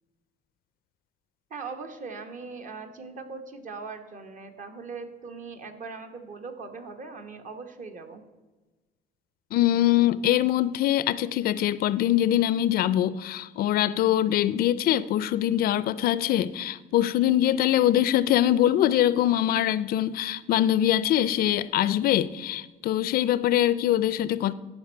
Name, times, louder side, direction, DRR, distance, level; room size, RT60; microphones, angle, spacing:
voice 1, 1.5-8.2, right 4 dB, 50° right, 1.2 m, -40 dB
voice 2, 9.5-24.5, left 12 dB, 65° left, 0.4 m, -23 dB
13.0 x 5.4 x 4.5 m
cardioid pair, 110°, 17 cm